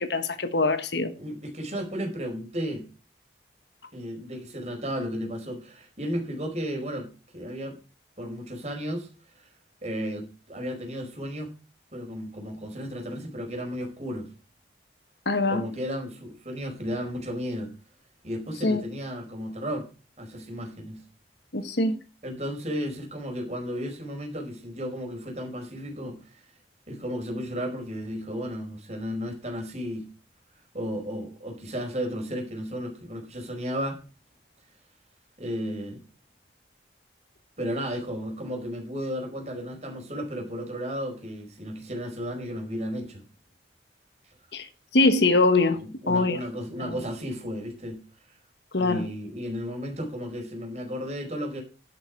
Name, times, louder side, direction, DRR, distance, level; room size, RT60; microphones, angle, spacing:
voice 1, 0.0-1.1 15.2-15.6 18.6-18.8 21.5-22.0 44.5-44.7 44.9-45.8 46.1-46.4 46.8-47.0 48.7-49.1, left 3 dB, 70° left, 1.4 m, -23 dB
voice 2, 1.2-2.8 3.9-7.8 8.2-9.1 9.4-9.5 9.8-11.5 11.9-14.3 15.5-17.7 18.2-19.9 20.2-21.0 22.2-26.2 26.9-30.1 30.7-34.0 35.4-36.0 37.6-43.2 45.8-48.0 48.8-51.6, equal, 35° right, 4.6 m, -33 dB
11.0 x 9.2 x 4.7 m
head